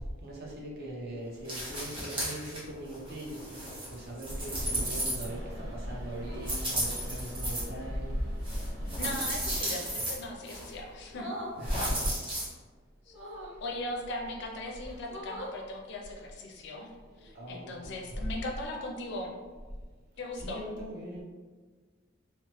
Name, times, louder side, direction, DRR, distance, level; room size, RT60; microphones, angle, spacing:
voice 1, 0.2-8.2 11.6-12.1 16.5-16.7 17.2-18.1 20.4-21.2, right 1 dB, 50° right, -3 dB, 0.7 m, -40 dB
sound 1, 1.4-2.6 2.9-5.6 6.4-7.6 8.4-10.1 10.5-10.7 11.6-12.5, right 1 dB, 25° right, 1.0 m, -34 dB
Rain, 4.2-9.6, equal, 85° right, 1.1 m, -37 dB
sound 2, 4.6-5.0 6.2-6.6 8.9-9.3 11.1-11.6 13.1-13.6 14.4-14.5 14.8-15.6 17.2-17.4, equal, 10° right, 0.7 m, -43 dB
voice 2, 8.9-11.3 13.1-13.2 13.6-16.9 17.2-19.4 20.1-20.7, left 1 dB, 60° left, 1 dB, 0.4 m, -39 dB
2.9 x 2.0 x 3.0 m, 1.4 s
head